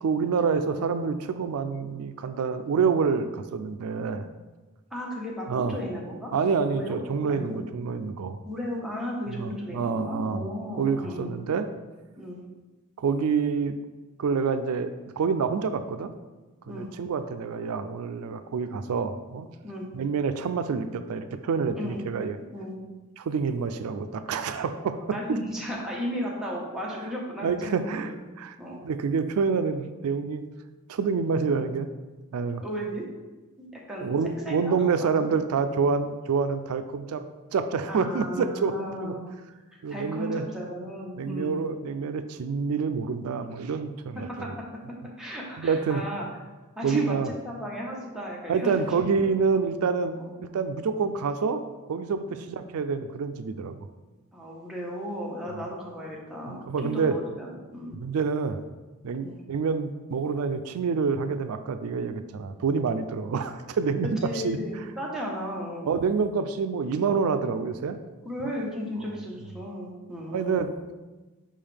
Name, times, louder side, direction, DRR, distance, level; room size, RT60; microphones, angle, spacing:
voice 1, 0.0-4.3 5.5-5.8 6.3-8.4 9.3-10.4 10.8-11.7 13.0-13.8 14.2-16.1 16.7-19.5 19.9-22.4 23.2-25.0 27.4-28.1 28.4-28.6 28.8-30.4 30.9-31.9 32.3-32.6 34.0-37.2 37.5-39.1 39.8-40.4 41.2-44.5 45.6-46.0 46.8-47.3 48.5-51.6 51.9-53.7 55.5-55.7 56.5-57.2 57.9-58.6 59.0-64.6 65.9-68.0 70.3-70.9, right 5 dB, 90° right, 10 dB, 0.4 m, -27 dB
voice 2, 4.9-7.0 7.3-7.6 8.4-11.3 12.2-12.4 16.7-16.9 19.6-19.9 21.8-22.0 22.5-22.8 25.1-28.2 28.6-28.8 32.6-33.0 33.6-34.1 34.4-35.3 37.9-39.2 39.7-41.6 44.4-44.5 45.2-46.2 46.7-48.8 50.1-50.3 52.3-52.5 54.3-57.9 59.2-59.4 64.2-65.9 68.2-70.7, equal, 5° right, -4 dB, 1.1 m, -35 dB
5.5 x 5.1 x 3.4 m, 1.2 s
head